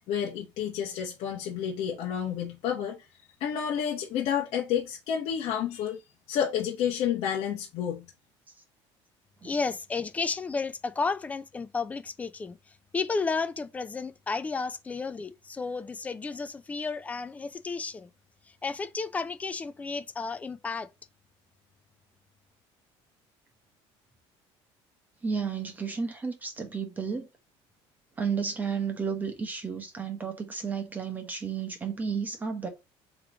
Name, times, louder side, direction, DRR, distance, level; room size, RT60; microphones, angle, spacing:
voice 1, 0.1-3.1 3.4-6.0 6.3-8.0, left 8 dB, 60° left, 1.0 m, -30 dB
voice 2, 9.4-12.6 12.9-18.1 18.6-20.9, left 4 dB, 15° left, 0.4 m, -32 dB
voice 3, 25.2-27.3 28.2-32.7, right 6 dB, 15° right, 1.1 m, -32 dB
3.7 x 3.1 x 4.7 m
cardioid pair, 155°, 11 cm